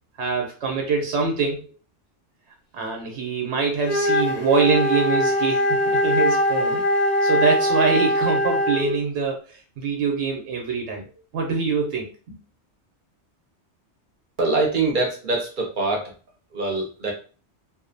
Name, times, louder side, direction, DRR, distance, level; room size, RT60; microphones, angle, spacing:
voice 1, 0.2-1.7 2.7-6.8 7.2-11.0 11.3-12.4, right 4 dB, 80° right, 1 dB, 0.9 m, -24 dB
Wind instrument woodwind instrument, 3.8-9.0, left 1 dB, 45° left, 0.6 m, -22 dB
voice 2, 14.4-16.1 16.5-17.1, right 3 dB, 55° right, 1 dB, 0.7 m, -24 dB
2.5 x 2.1 x 2.5 m, 0.36 s
omnidirectional pair, 1.2 m